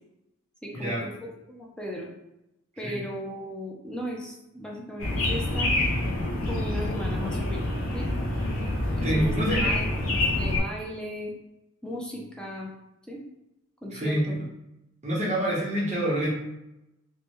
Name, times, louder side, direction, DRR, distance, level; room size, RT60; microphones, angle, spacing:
voice 1, 0.6-1.2 1.5-2.1 2.8-5.7 6.3-8.1 8.9-9.9 10.4-11.3 11.8-12.7 13.1-13.2 13.8-14.4, equal, 5° left, -2 dB, 0.4 m, -36 dB
sound 1, 5.0-10.6, left 1 dB, 75° left, 0.6 m, -27 dB
voice 2, 9.0-9.7 13.9-14.4 15.0-16.3, right 1 dB, 35° right, -5 dB, 1.0 m, -26 dB
3.4 x 2.2 x 2.9 m, 0.88 s
head